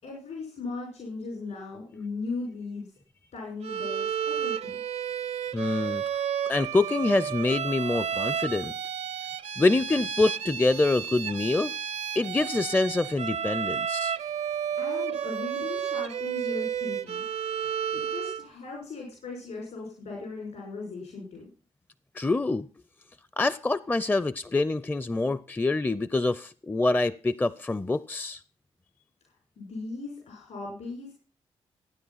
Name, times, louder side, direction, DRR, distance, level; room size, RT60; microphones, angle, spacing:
voice 1, 0.0-2.9 3.3-4.7 14.8-17.2 17.9-21.5 29.6-31.1, left 3 dB, 75° left, 5.9 m, -38 dB
Bowed string instrument, 3.6-18.5, right 8 dB, 70° right, 0.7 m, -32 dB
voice 2, 5.5-6.0 6.5-8.7 9.6-11.7 12.2-14.1 22.2-22.7 23.4-28.4, left 2 dB, 15° left, 0.5 m, -26 dB
15.0 x 9.5 x 5.6 m
supercardioid pair, 55°, 12 cm